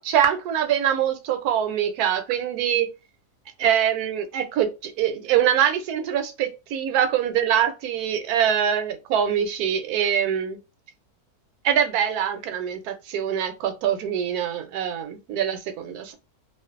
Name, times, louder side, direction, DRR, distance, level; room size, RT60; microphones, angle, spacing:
voice 1, 0.0-2.9 3.6-10.6 11.6-16.1, right 9 dB, 80° right, 1.1 m, -24 dB
2.5 x 2.3 x 2.4 m
omnidirectional pair, 1.6 m